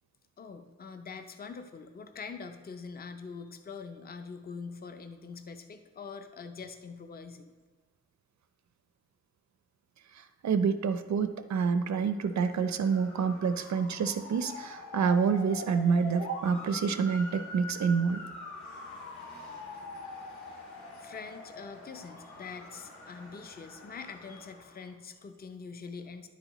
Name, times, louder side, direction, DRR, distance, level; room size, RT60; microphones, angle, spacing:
voice 1, 0.4-7.5 21.0-26.3, left 5 dB, 35° left, 8 dB, 0.5 m, -44 dB
voice 2, 10.1-18.2, right 5 dB, 70° right, 10 dB, 0.5 m, -28 dB
Motor vehicle (road) / Siren, 12.2-24.9, left 2 dB, 85° left, 1.8 m, -45 dB
10.5 x 8.2 x 3.0 m, 1.4 s
wide cardioid pair, 160°, 29 cm